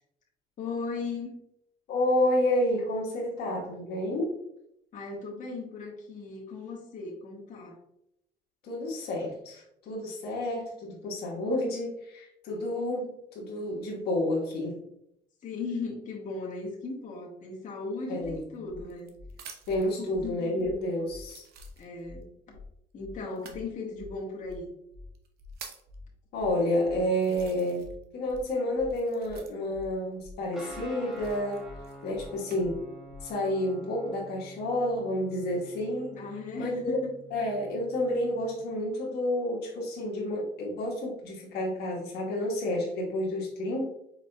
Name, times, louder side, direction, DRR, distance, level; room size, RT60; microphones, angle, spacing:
voice 1, 0.6-1.3 4.9-7.8 15.4-19.1 20.0-20.7 21.8-22.3 22.9-24.7 36.1-37.1, left 3 dB, 50° left, -3 dB, 1.5 m, -37 dB
voice 2, 1.9-4.4 8.6-14.8 18.1-18.7 19.7-21.4 26.3-27.9 28.1-31.6 32.0-32.8 33.2-36.2 36.5-37.0 37.3-43.8, left 1 dB, 75° left, -3 dB, 1.4 m, -30 dB
sound 1, 18.2-19.9 20.6-20.7 21.2-22.2 23.3-23.6 24.5-24.6 25.1-25.9 26.6-26.7 27.1-28.0 28.3-29.8 31.1-32.6 33.3-33.7, right 6 dB, 65° right, 0.9 m, -49 dB
sound 2, 18.2-18.3 18.7-18.8 19.1-19.3 19.6-19.8 20.1-20.3 20.6-20.7 21.1-21.2 21.5-21.7 22.0-22.2 22.5-22.7 23.0-23.1 23.5-23.6 23.9-24.1 24.4-24.6 24.9-25.1 25.4-25.5 25.9-26.0 26.3-26.5 26.8-27.0 27.3-27.5 27.8-27.9 28.3-28.4 28.7-28.9 29.2-29.4 29.7-29.9 30.2-30.3 30.7-30.8 31.1-31.3 31.6-31.8 32.1-32.3 32.6-32.7 33.1-33.2, left 3 dB, 90° right, 1.4 m, -47 dB
Guitar, 30.5-38.6, right 2 dB, 5° right, 1.4 m, -48 dB
4.9 x 4.7 x 2.2 m, 0.77 s
cardioid pair, 110°, 17 cm